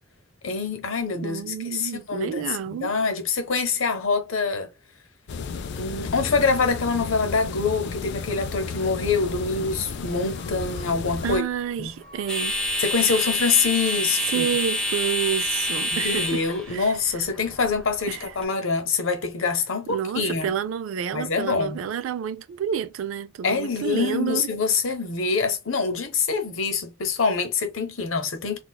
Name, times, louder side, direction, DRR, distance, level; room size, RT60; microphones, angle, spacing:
voice 1, 0.4-2.5 2.7-4.7 5.8-11.4 11.8-11.9 12.8-14.5 15.9-20.5 21.1-21.8 23.4-28.6, left 4 dB, 75° left, 0.8 m, -25 dB
voice 2, 1.1-2.9 11.2-12.5 14.2-17.3 18.1-18.3 19.9-24.5, right 8 dB, 75° right, 0.3 m, -29 dB
sound 1, 5.3-11.4, left 5 dB, 55° left, 0.3 m, -33 dB
sound 2, 7.2-18.4, left 1 dB, 5° left, 0.7 m, -30 dB
4.0 x 2.3 x 2.2 m
head